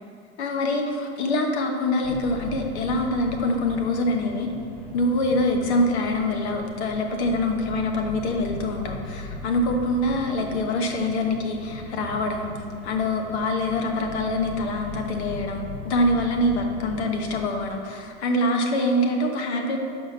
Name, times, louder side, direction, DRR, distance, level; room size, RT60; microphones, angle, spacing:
voice 1, 0.4-4.5 4.9-12.5 12.8-19.8, left 1 dB, 70° left, 3 dB, 1.1 m, -25 dB
sound 1, 2.0-17.4, left 2 dB, 25° left, 0.7 m, -39 dB
6.4 x 5.0 x 5.7 m, 2.3 s
supercardioid pair, 180°, 35 cm